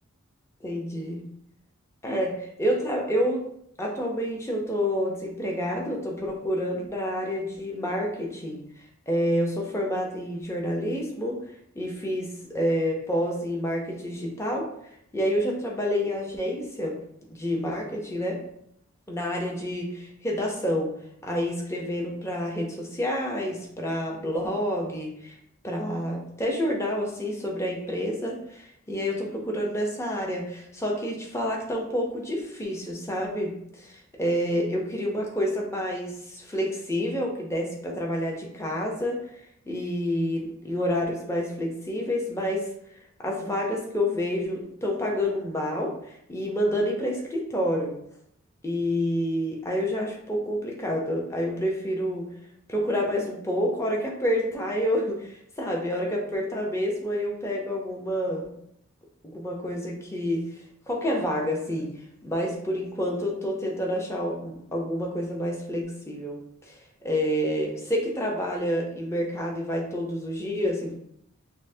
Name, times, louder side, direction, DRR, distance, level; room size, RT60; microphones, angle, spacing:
voice 1, 0.6-1.2 2.0-3.5 3.8-11.4 11.7-14.7 15.1-17.0 17.3-18.4 19.1-20.9 21.2-25.4 25.6-39.3 39.7-42.7 43.2-48.0 48.6-52.3 52.7-58.5 59.2-70.9, equal, 15° left, -1 dB, 0.6 m, -28 dB
5.6 x 2.0 x 2.6 m, 0.73 s
head